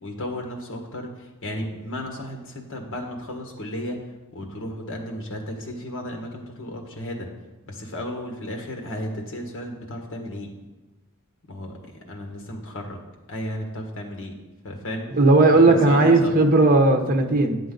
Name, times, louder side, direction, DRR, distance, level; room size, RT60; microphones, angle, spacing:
voice 1, 0.0-4.0 4.3-7.3 7.7-10.5 11.5-11.8 12.1-13.0 13.3-14.3 14.6-15.1 15.5-16.3, left 1 dB, 60° left, 2 dB, 1.6 m, -34 dB
voice 2, 15.1-17.6, right 2 dB, 40° right, 4 dB, 0.9 m, -16 dB
9.9 x 7.6 x 3.9 m, 1.1 s
head